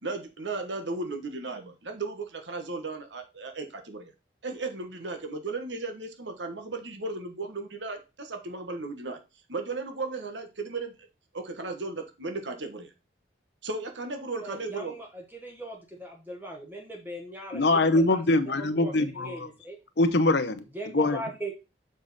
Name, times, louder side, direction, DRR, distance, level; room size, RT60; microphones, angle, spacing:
voice 1, 0.0-4.1 4.4-9.2 9.5-10.9 11.3-12.9 13.6-14.9, right 3 dB, 75° right, 1.3 m, -35 dB
voice 2, 14.4-18.2 18.6-19.8 20.7-21.5, right 1 dB, 10° right, 1.2 m, -39 dB
voice 3, 17.5-19.3 20.0-20.6 20.9-21.2, left 2 dB, 65° left, 0.8 m, -23 dB
6.6 x 5.0 x 4.1 m
head